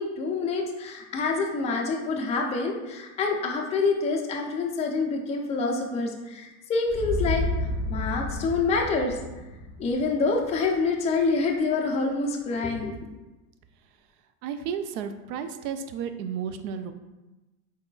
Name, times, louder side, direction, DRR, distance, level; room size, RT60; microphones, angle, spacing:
voice 1, 0.0-9.2 9.8-12.9, left 4 dB, 15° left, 0 dB, 0.3 m, -27 dB
sound 1, 6.9-10.9, left 1 dB, 10° right, 1.5 m, -31 dB
voice 2, 14.4-16.9, right 7 dB, 70° right, 9 dB, 0.5 m, -32 dB
4.1 x 3.6 x 2.3 m, 1.1 s
supercardioid pair, 110°, 46 cm